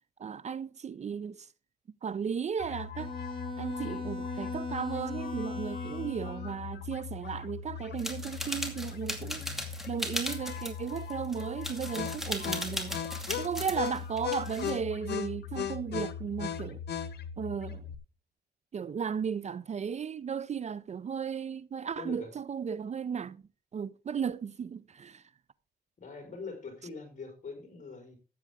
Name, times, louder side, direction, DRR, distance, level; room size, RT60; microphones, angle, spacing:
voice 1, 0.2-1.5 2.0-3.1 3.6-9.4 9.9-13.0 13.4-16.8 17.4-17.9 18.7-23.4 23.7-25.2, right 7 dB, 40° right, 0.5 m, -35 dB
sound 1, 2.6-18.0, left 8 dB, 75° left, 1.3 m, -39 dB
Bowed string instrument, 3.0-6.6, left 3 dB, 30° left, 2.1 m, -39 dB
sound 2, 8.0-14.7, equal, ahead, 2.5 m, -37 dB
voice 2, 9.3-9.6 21.9-22.3 26.0-28.2, left 4 dB, 45° left, 4.4 m, -43 dB
14.0 x 8.6 x 3.5 m
cardioid pair, 115°, 17 cm